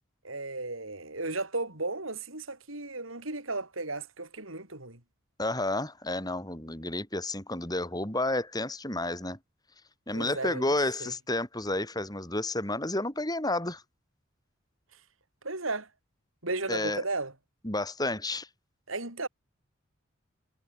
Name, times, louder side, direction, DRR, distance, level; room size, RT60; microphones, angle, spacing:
voice 1, 0.2-5.0 10.1-10.8 11.0-11.1 15.4-15.9 16.4-17.3 18.9-19.3, right 3 dB, 85° right, 7.2 m, -34 dB
voice 2, 5.4-9.4 10.1-13.8 16.7-17.0 17.6-18.5, left 2 dB, 20° left, 6.6 m, -31 dB
head